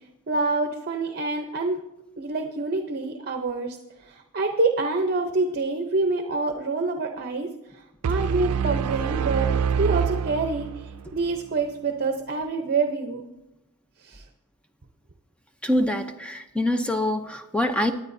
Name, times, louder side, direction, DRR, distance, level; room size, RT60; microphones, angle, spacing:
voice 1, 0.3-1.8 2.2-3.8 4.0-9.5 9.8-13.3 14.0-14.2, right 3 dB, 45° right, 5 dB, 0.7 m, -27 dB
sound 1, 8.0-11.1, right 7 dB, 80° right, 0.4 m, -26 dB
voice 2, 15.6-17.9, left 1 dB, 5° left, 7 dB, 0.6 m, -25 dB
22.0 x 9.1 x 2.7 m, 0.91 s
head